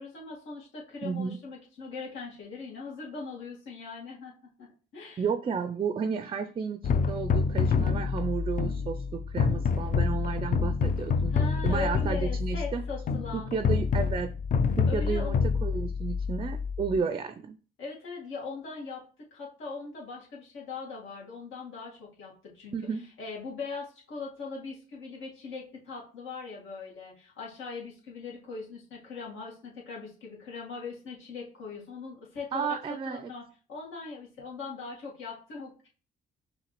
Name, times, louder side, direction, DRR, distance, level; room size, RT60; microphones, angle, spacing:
voice 1, 0.0-5.2 11.3-13.5 14.9-15.4 16.9-17.1 17.8-19.0 19.3-22.7 23.2-32.8 33.0-33.4 33.7-35.9, left 4 dB, 80° left, -3 dB, 1.7 m, -40 dB
voice 2, 1.0-1.4 5.2-11.3 11.6-12.8 13.3-14.3 14.8-17.6 22.7-23.1 32.5-33.3, right 6 dB, 30° right, 10 dB, 0.4 m, -32 dB
sound 1, 6.8-17.0, left 5 dB, 45° left, 0.4 m, -27 dB
5.7 x 2.7 x 3.0 m, 0.40 s
cardioid pair, 90°, 20 cm